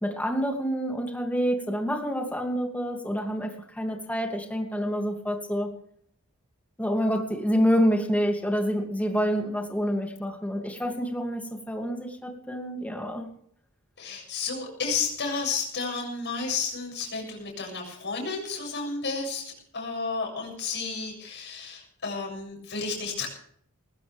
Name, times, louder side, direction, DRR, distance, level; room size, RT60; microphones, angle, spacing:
voice 1, 0.0-5.7 6.8-13.3, equal, 5° left, 3 dB, 2.6 m, -27 dB
voice 2, 14.0-23.3, left 4 dB, 55° left, -1 dB, 7.3 m, -32 dB
20.0 x 16.0 x 3.5 m, 0.65 s
head